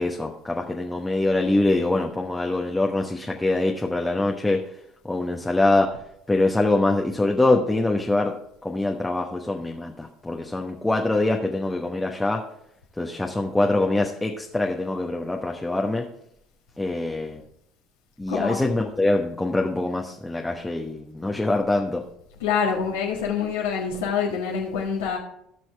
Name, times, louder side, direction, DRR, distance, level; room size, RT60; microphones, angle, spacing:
voice 1, 0.0-4.6 5.0-5.9 6.3-8.3 8.6-12.4 13.0-16.1 16.8-17.4 18.2-22.0, left 2 dB, 10° left, 1 dB, 1.1 m, -24 dB
voice 2, 18.3-18.6 22.4-25.2, left 6 dB, 75° left, -2 dB, 1.6 m, -26 dB
16.5 x 6.2 x 3.4 m, 0.74 s
hypercardioid pair, 65°, 0 cm